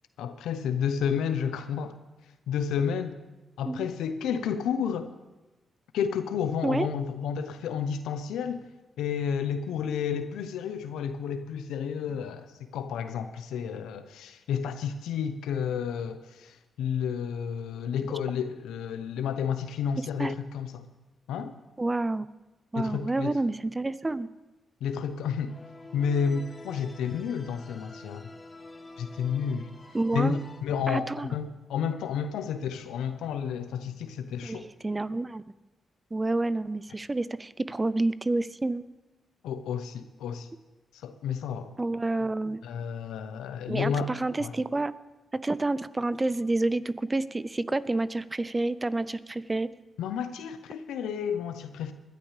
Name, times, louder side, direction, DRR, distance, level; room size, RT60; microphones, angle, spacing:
voice 1, 0.2-2.0 2.5-3.2 3.6-5.1 5.9-8.7 9.0-20.8 21.3-21.5 22.8-23.4 24.8-25.6 25.9-28.3 29.0-29.7 30.1-34.7 39.4-40.5 41.0-41.7 42.6-44.1 44.4-44.5 50.0-51.9, left 7 dB, 85° left, 10 dB, 0.8 m, -31 dB
voice 2, 21.8-22.3 22.7-24.3 29.9-30.4 30.9-31.3 34.4-35.4 36.1-38.8 41.8-42.6 43.7-44.9 45.3-49.7, right 2 dB, 25° right, 16 dB, 0.6 m, -29 dB
sound 1, 25.5-30.6, left 2 dB, 30° left, 2.2 m, -48 dB
20.5 x 12.0 x 3.3 m, 1.1 s
supercardioid pair, 55°, 0 cm